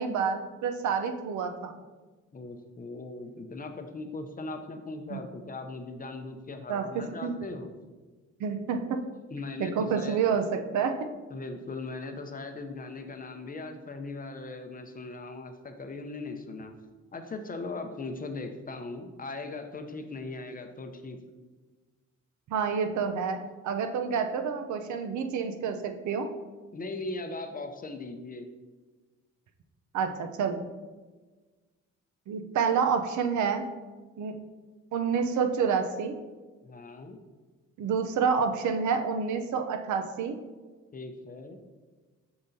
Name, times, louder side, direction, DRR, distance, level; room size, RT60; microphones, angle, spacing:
voice 1, 0.0-1.8 5.1-5.2 6.7-7.4 8.4-9.0 9.6-11.0 22.5-26.3 29.9-30.6 32.3-33.7 34.2-34.4 34.9-36.1 37.8-40.4, right 6 dB, 70° right, 7 dB, 0.6 m, -28 dB
voice 2, 2.3-7.7 9.3-10.4 11.3-16.7 17.1-21.2 26.7-28.5 36.6-37.2 40.9-41.6, left 3 dB, 30° left, 6 dB, 0.6 m, -39 dB
6.8 x 5.5 x 2.7 m, 1.3 s
cardioid pair, 90°, 30 cm